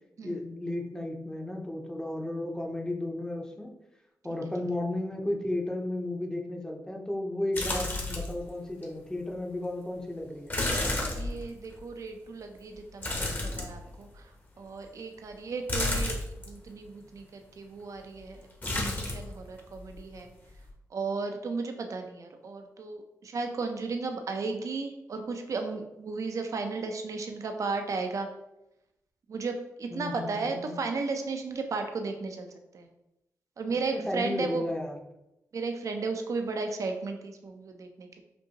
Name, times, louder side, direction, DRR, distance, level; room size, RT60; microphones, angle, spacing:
voice 1, 0.2-3.7 4.2-10.6 29.9-30.8 33.9-34.9, left 1 dB, 10° left, 1 dB, 0.7 m, -33 dB
sound 1, 7.5-8.4 8.8-8.9 10.5-11.8 13.0-14.1 15.7-16.5 18.6-19.3 19.6-20.2 20.5-20.7, left 2 dB, 30° left, 1.0 m, -31 dB
voice 2, 11.1-14.2 14.6-16.2 16.5-20.3 20.9-28.3 29.3-32.5 32.7-32.9 33.6-34.7 35.5-38.2, right 4 dB, 60° right, 5 dB, 0.6 m, -34 dB
5.2 x 2.7 x 2.9 m, 0.90 s
cardioid pair, 70°, 6 cm